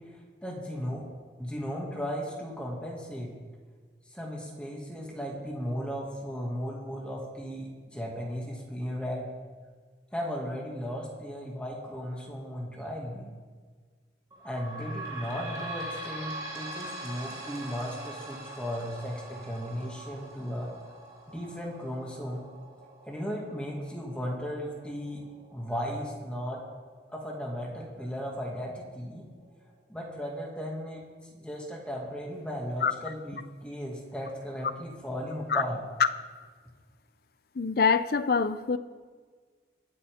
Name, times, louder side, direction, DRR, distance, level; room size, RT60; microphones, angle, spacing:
voice 1, 0.4-1.0 1.4-3.3 4.1-9.3 10.1-13.3 14.4-20.7 21.3-22.4 23.1-26.6 27.1-29.3 29.9-31.0 31.3-35.8, equal, 5° left, -2 dB, 2.2 m, -36 dB
sound 1, 14.3-27.5 28.0-28.1 28.4-28.5 29.3-29.4, right 2 dB, 20° right, 2.4 m, -43 dB
voice 2, 37.5-38.8, left 5 dB, 55° left, 13 dB, 0.5 m, -25 dB
22.0 x 8.5 x 3.7 m, 1.5 s
head